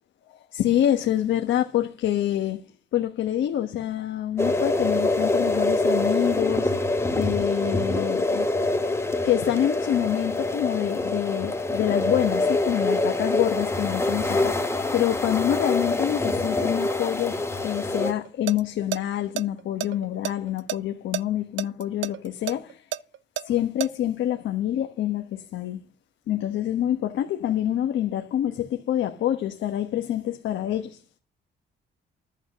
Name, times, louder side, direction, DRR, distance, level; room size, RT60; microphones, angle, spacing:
voice 1, 0.3-2.6 2.9-8.5 9.2-17.4 17.6-22.8 23.4-25.8 26.3-31.0, left 11 dB, 75° left, 1.3 m, -26 dB
sound 1, 4.4-18.1, left 2 dB, 15° left, 1.6 m, -25 dB
sound 2, 18.3-18.6 18.9-19.0 19.4-20.8 21.1-21.2 21.6-23.9, right 13 dB, 70° right, 0.6 m, -29 dB
11.0 x 7.6 x 6.3 m
cardioid pair, 90°, 20 cm